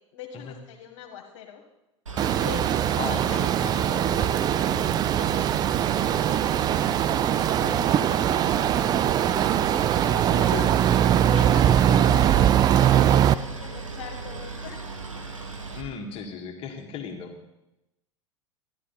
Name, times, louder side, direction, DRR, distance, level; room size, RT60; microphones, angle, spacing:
voice 1, 0.1-1.6 2.3-6.5 7.5-10.9 11.3-14.8, left 8 dB, 55° left, 0 dB, 1.7 m, -42 dB
Boat Water vehicle, 2.1-15.8, right 4 dB, 80° right, 1.5 m, -37 dB
sound 1, 2.2-13.3, right 10 dB, 25° right, 0.4 m, -21 dB
voice 2, 3.0-3.5 10.1-10.3 15.7-17.3, left 6 dB, 35° left, 4 dB, 1.7 m, -37 dB
13.0 x 11.5 x 4.0 m, 0.93 s
figure-of-eight pair, 85°, 16 cm